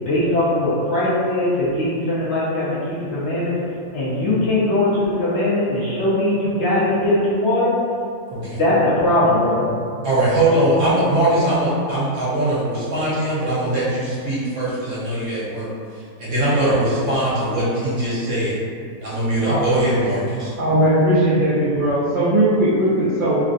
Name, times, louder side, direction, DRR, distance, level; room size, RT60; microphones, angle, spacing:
voice 1, 0.0-3.5 3.9-7.7 8.4-9.7, left 1 dB, 60° left, -10 dB, 0.7 m, -20 dB
voice 2, 10.0-15.7 16.2-18.5 19.0-20.5, right 1 dB, 55° right, -9 dB, 1.1 m, -21 dB
voice 3, 20.5-23.4, right 1 dB, 85° right, -11 dB, 0.4 m, -18 dB
3.0 x 2.6 x 2.5 m, 2.4 s
omnidirectional pair, 1.7 m